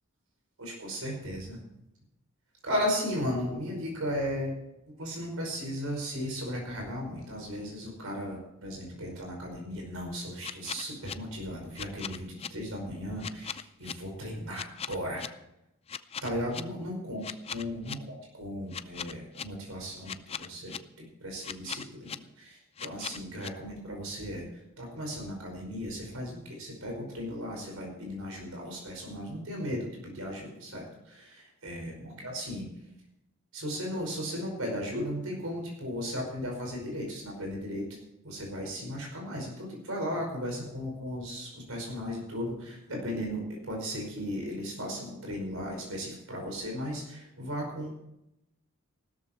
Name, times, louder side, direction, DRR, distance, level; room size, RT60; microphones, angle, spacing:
voice 1, 0.6-1.6 2.6-4.5 5.0-15.3 16.2-17.2 17.5-20.7 21.2-32.7 33.5-37.9 38.2-48.0, equal, 75° right, 0 dB, 5.3 m, -36 dB
sound 1, 10.4-11.1 11.8-12.5 13.2-13.9 14.5-15.3 15.9-16.6 17.2-18.0 18.7-19.4 20.1-20.8 21.4-22.2 22.8-23.5, left 7 dB, 30° left, 0.5 m, -38 dB
15.5 x 13.5 x 4.5 m, 0.84 s
head